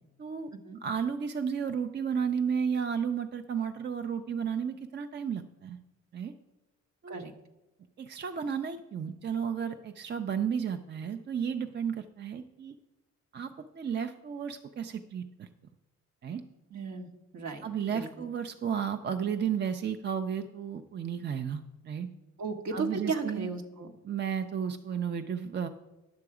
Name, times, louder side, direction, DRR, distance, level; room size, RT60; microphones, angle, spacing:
voice 1, 0.2-0.5 0.8-5.8 6.1-6.3 7.0-7.2 8.0-12.8 13.3-15.5 16.2-16.4 17.6-22.1 22.7-23.5 24.0-25.7, right 7 dB, 35° right, 9 dB, 0.5 m, -33 dB
voice 2, 16.7-17.6 17.9-18.3 22.4-23.9, right 4 dB, 65° right, 5 dB, 1.3 m, -35 dB
10.5 x 6.7 x 4.9 m, 1.0 s
cardioid pair, 90°, 30 cm